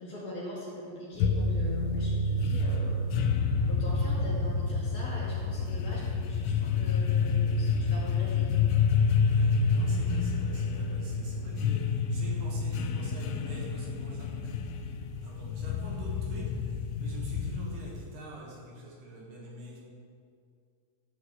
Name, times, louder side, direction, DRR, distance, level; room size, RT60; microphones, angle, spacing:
voice 1, 0.0-3.0 3.7-8.5, equal, 50° left, -6 dB, 3.5 m, -42 dB
sound 1, 1.2-18.0, left 4 dB, 90° left, 3.1 m, -28 dB
voice 2, 9.3-14.7 15.2-19.8, right 2 dB, 65° right, -3 dB, 3.2 m, -46 dB
13.5 x 5.8 x 7.9 m, 2.3 s
omnidirectional pair, 5.5 m